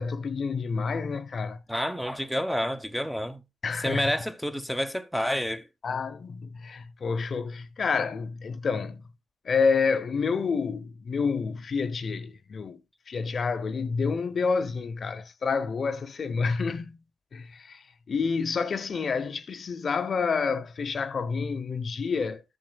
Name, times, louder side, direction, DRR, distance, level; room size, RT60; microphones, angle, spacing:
voice 1, 0.0-1.6 3.6-4.1 5.8-9.0 9.4-12.8 13.1-17.0 17.3-22.4, left 5 dB, 45° left, 0.6 m, -29 dB
voice 2, 1.7-3.4 3.8-5.7, equal, ahead, 0.8 m, -29 dB
13.5 x 7.5 x 2.2 m
cardioid pair, 90°, 0 cm